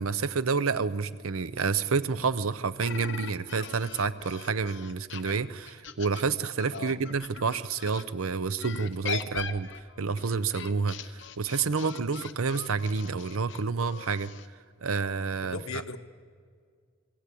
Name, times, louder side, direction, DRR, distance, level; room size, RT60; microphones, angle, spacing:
voice 1, 0.0-9.7 10.0-14.3 14.8-15.6, right 5 dB, 85° right, 15 dB, 0.7 m, -29 dB
sound 1, 2.8-8.0 8.6-14.5, left 6 dB, 60° left, 0.9 m, -40 dB
voice 2, 15.4-16.0, left 4 dB, 80° left, 8 dB, 1.2 m, -37 dB
25.5 x 17.0 x 8.4 m, 2.1 s
head